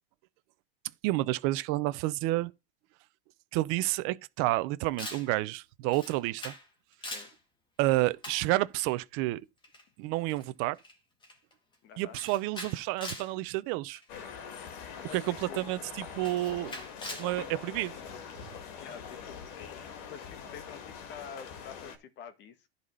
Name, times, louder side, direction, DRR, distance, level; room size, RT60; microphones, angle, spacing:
voice 1, 1.0-2.5 3.5-6.5 7.8-9.4 10.0-10.8 12.0-14.0 15.1-16.8 17.2-17.9, right 18 dB, 45° right, 0.7 m, -30 dB
Camera, 5.0-5.3 5.9-6.7 6.9-7.4 8.2-8.5 9.6-9.8 10.3-10.4 10.8-11.0 11.2-11.5 12.2-13.3 14.0-14.2 15.2-15.3 16.2-17.3, left 2 dB, 15° left, 2.0 m, -42 dB
voice 2, 7.0-7.3 11.8-12.1 15.0-15.7 18.8-19.4 20.1-22.7, left 7 dB, 35° left, 1.7 m, -47 dB
sound 1, 14.1-22.0, left 7 dB, 55° left, 2.1 m, -44 dB
11.0 x 4.2 x 5.4 m
supercardioid pair, 130°, 29 cm